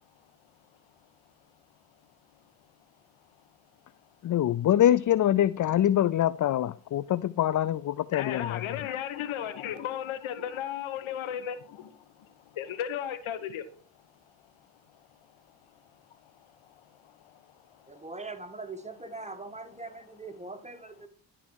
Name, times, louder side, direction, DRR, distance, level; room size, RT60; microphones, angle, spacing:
voice 1, 4.2-8.6, left 11 dB, 40° left, 0.4 m, -24 dB
voice 2, 8.1-11.9 12.6-13.6, left 10 dB, 85° left, 1.2 m, -34 dB
voice 3, 17.9-21.1, right 3 dB, 15° right, 1.7 m, -41 dB
12.5 x 4.5 x 6.3 m
supercardioid pair, 50°, 47 cm